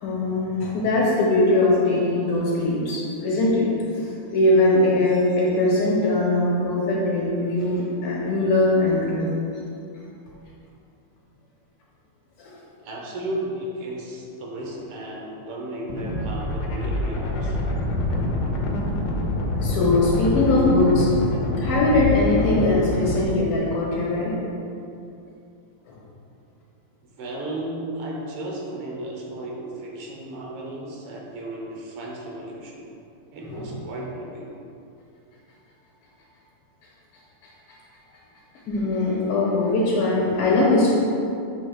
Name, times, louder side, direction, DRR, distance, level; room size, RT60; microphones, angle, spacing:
voice 1, 0.0-3.7 4.0-9.3 12.4-12.5 19.5-21.1 21.6-24.3 25.9-26.0 33.5-33.8 38.7-40.9, left 2 dB, 85° left, -6 dB, 2.0 m, -21 dB
voice 2, 12.8-17.6 27.0-32.9 33.3-34.5, right 1 dB, 80° right, -1 dB, 1.8 m, -34 dB
sound 1, 15.9-23.2, left 2 dB, 70° left, 1.0 m, -26 dB
6.3 x 3.0 x 5.2 m, 2.6 s
omnidirectional pair, 2.4 m